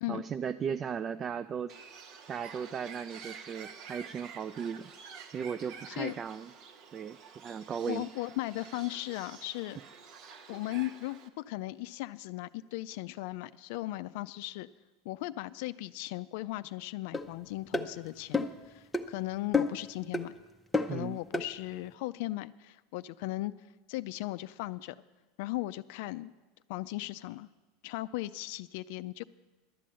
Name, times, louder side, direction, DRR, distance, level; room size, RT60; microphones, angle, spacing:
voice 1, 0.1-1.8 2.3-4.9 5.3-6.5 6.9-8.1 20.9-21.2, right 7 dB, 30° right, 13 dB, 0.3 m, -36 dB
Bird, 1.7-11.3, right 6 dB, 50° right, 1.0 m, -49 dB
voice 2, 7.9-9.8 10.5-14.7 15.1-20.3 20.9-23.5 23.9-25.0 25.4-26.3 26.7-27.5 27.8-29.2, left 18 dB, 70° left, 13 dB, 0.3 m, -37 dB
sound 1, 17.1-17.3 17.7-17.9 18.3-18.6 18.9-19.1 19.5-19.9 20.1-20.3 20.7-21.0 21.3-21.5, left 3 dB, 5° left, 0.7 m, -29 dB
11.5 x 8.4 x 7.5 m, 1.2 s
supercardioid pair, 120°, 0 cm